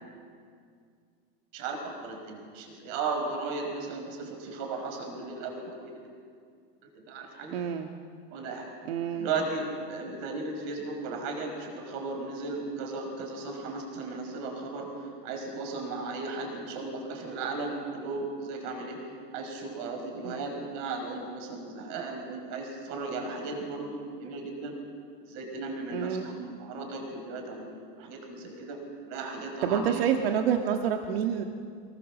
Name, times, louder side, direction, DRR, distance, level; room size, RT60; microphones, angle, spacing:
voice 1, 1.5-6.0 7.1-7.5 8.3-8.7 9.2-19.0 19.3-24.7 25.3-27.7 28.0-30.0, right 3 dB, 50° right, 4 dB, 5.6 m, -36 dB
voice 2, 7.5-7.9 8.9-9.3 20.2-20.4 25.9-26.3 29.6-31.4, right 8 dB, 80° right, 4 dB, 1.7 m, -28 dB
25.5 x 21.0 x 7.4 m, 2.2 s
supercardioid pair, 165°, 29 cm